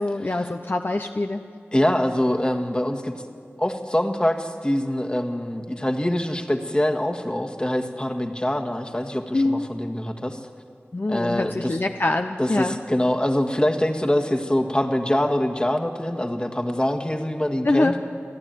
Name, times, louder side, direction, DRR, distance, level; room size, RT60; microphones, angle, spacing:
voice 1, 0.0-1.4 9.3-9.7 10.9-12.8 17.6-17.9, left 2 dB, 50° left, 5 dB, 0.8 m, -24 dB
voice 2, 1.7-3.1 3.6-10.4 11.1-11.7 12.4-17.9, left 1 dB, 20° left, 5 dB, 1.8 m, -24 dB
29.5 x 12.0 x 9.3 m, 2.3 s
wide cardioid pair, 55°, 5 cm